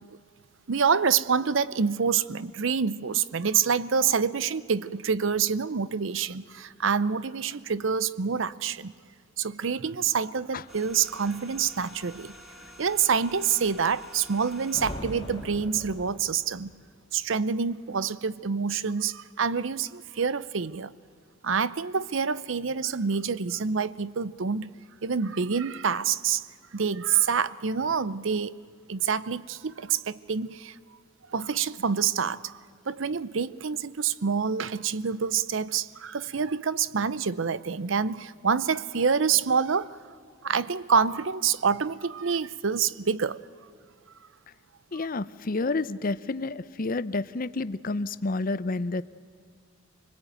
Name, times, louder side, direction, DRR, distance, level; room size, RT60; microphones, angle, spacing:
voice 1, 0.7-8.9 9.4-12.3 12.8-16.7 17.1-20.9 21.4-24.7 25.0-26.4 26.7-28.5 28.9-30.8 31.3-32.6 32.9-40.0 40.4-43.4, right 6 dB, 70° right, 17 dB, 0.7 m, -27 dB
sound 1, 10.7-17.0 17.3-17.5, equal, 5° right, 2.6 m, -50 dB
sound 2, 14.7-16.7, left 1 dB, 25° left, 1.8 m, -40 dB
voice 2, 44.9-49.0, left 3 dB, 45° left, 15 dB, 0.6 m, -29 dB
25.5 x 20.5 x 9.1 m, 2.2 s
head